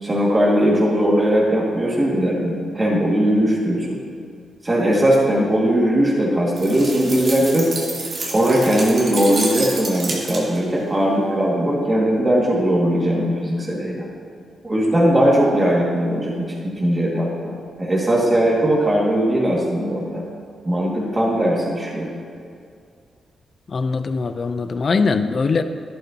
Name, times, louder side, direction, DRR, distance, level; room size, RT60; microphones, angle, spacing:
voice 1, 0.0-4.0 4.6-7.7 8.2-14.1 14.6-20.2 20.6-22.1, equal, 25° right, -4 dB, 2.1 m, -19 dB
sound 1, 6.6-10.7, right 2 dB, 55° right, 2.0 m, -29 dB
voice 2, 23.7-25.6, left 4 dB, 50° left, 9 dB, 0.6 m, -21 dB
12.0 x 11.0 x 2.9 m, 2.3 s
cardioid pair, 75°, 0 cm